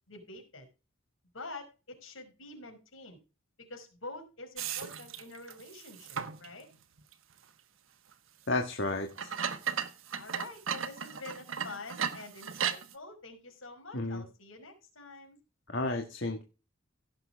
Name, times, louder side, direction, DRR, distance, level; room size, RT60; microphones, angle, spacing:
voice 1, 0.1-0.7 1.3-3.2 3.6-6.7 10.1-15.4, left 2 dB, 80° left, 4 dB, 4.9 m, -47 dB
sound 1, 4.6-6.5 7.0-7.1 8.1-8.2 9.1-12.9, right 7 dB, 80° right, 1.2 m, -36 dB
voice 2, 8.5-9.3 13.9-14.2 15.7-16.4, left 2 dB, 60° left, 3 dB, 1.5 m, -32 dB
16.5 x 6.6 x 3.5 m, 0.31 s
head